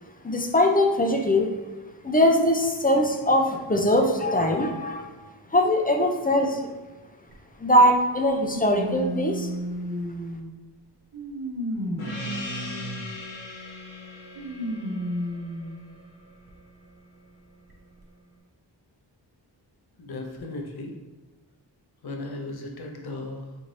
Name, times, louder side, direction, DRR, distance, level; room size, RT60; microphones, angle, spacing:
voice 1, 0.2-1.5 2.0-5.1 5.5-6.7 7.6-9.5, left 1 dB, 20° left, 3 dB, 0.5 m, -21 dB
sound 1, 7.3-7.4 8.5-10.6 11.1-13.2 14.3-15.8 16.5-16.6 17.7-17.8, equal, 50° right, 0.9 m, -32 dB
Gong, 12.0-17.0, left 1 dB, 75° left, 1.1 m, -39 dB
voice 2, 20.0-20.9 22.0-23.6, left 2 dB, 55° left, 2 dB, 0.8 m, -36 dB
4.4 x 2.6 x 3.1 m, 1.2 s
cardioid pair, 45°, 45 cm